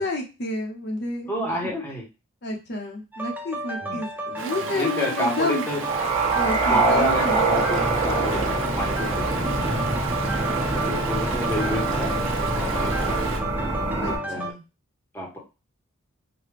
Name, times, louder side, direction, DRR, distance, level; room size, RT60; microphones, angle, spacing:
voice 1, 0.0-1.3 1.6-1.7 2.4-5.6 6.3-7.4 14.0-14.6, left 1 dB, 50° left, 1 dB, 0.8 m, -30 dB
voice 2, 1.3-2.0 3.8-4.0 4.6-5.8 6.7-9.9 10.5-13.7 14.3-14.5 15.1-15.4, left 1 dB, 10° left, -1 dB, 0.9 m, -30 dB
sound 1, 3.1-14.5, right 1 dB, 10° right, 0.3 m, -33 dB
Stream, 4.4-13.4, right 5 dB, 60° right, 0.6 m, -34 dB
sound 2, 5.8-14.2, right 3 dB, 25° right, 1.1 m, -24 dB
4.8 x 2.2 x 3.3 m, 0.29 s
head